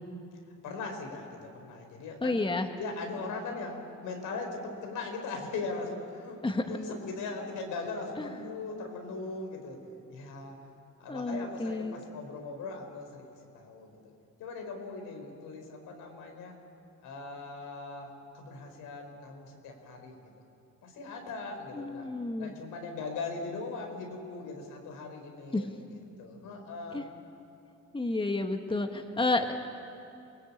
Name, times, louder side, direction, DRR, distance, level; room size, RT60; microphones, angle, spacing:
voice 1, 0.6-2.4 2.8-6.4 6.6-9.8 10.1-10.6 11.0-13.3 13.5-14.1 14.4-16.6 17.0-20.3 20.8-22.1 22.4-25.7 26.2-27.1, left 3 dB, 90° left, 3 dB, 4.8 m, -39 dB
voice 2, 2.2-2.7 6.4-6.6 8.2-8.3 11.1-11.9 21.7-22.5 25.5-25.7 26.9-27.1 27.9-29.6, left 2 dB, 15° left, 5 dB, 1.7 m, -30 dB
27.0 x 19.5 x 8.7 m, 2.7 s
cardioid pair, 90°, 30 cm